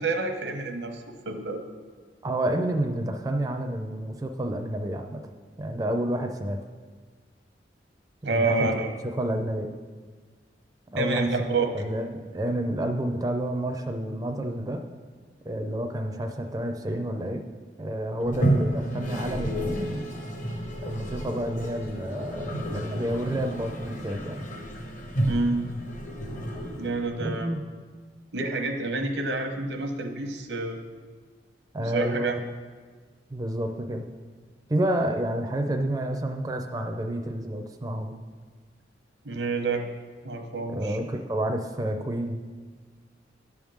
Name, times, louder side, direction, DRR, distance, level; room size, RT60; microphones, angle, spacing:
voice 1, 0.0-1.6 8.2-8.9 11.0-11.7 25.3-25.6 26.8-27.5 28.3-30.8 31.8-32.4 39.2-39.8 40.2-41.0, right 3 dB, 90° right, 4 dB, 0.9 m, -28 dB
voice 2, 2.2-5.3 5.6-6.6 8.3-9.7 10.9-14.8 15.5-17.4 17.8-20.2 20.8-24.5 27.2-27.6 31.7-32.4 33.3-34.1 34.7-38.2 40.7-42.4, right 1 dB, 20° right, 4 dB, 0.4 m, -29 dB
Toilet flush, 18.2-27.3, right 1 dB, 45° left, 0.9 m, -31 dB
10.5 x 3.6 x 6.3 m, 1.5 s
head